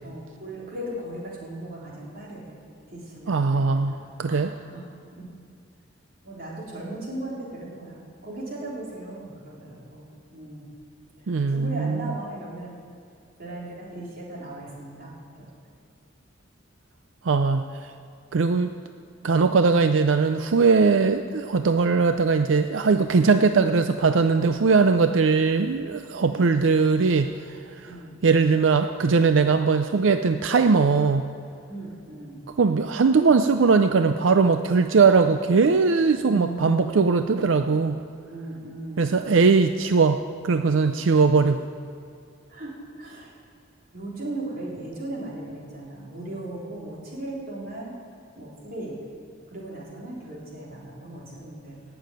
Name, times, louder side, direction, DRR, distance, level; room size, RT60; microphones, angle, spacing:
voice 1, 0.0-2.6 2.9-4.8 5.2-5.3 6.2-10.7 11.2-12.7 13.4-15.6 26.1-26.4 27.8-28.2 31.7-32.4 36.2-37.0 38.2-39.2 42.5-43.3 43.9-47.9 48.3-49.0 49.5-51.8, right 1 dB, 50° right, -5 dB, 3.8 m, -37 dB
voice 2, 3.3-4.5 11.3-12.1 17.2-17.9 18.3-18.7 19.2-27.9 28.2-31.2 32.6-38.0 39.0-41.6, right 4 dB, 90° right, 8 dB, 0.5 m, -20 dB
17.5 x 7.0 x 9.2 m, 2.3 s
head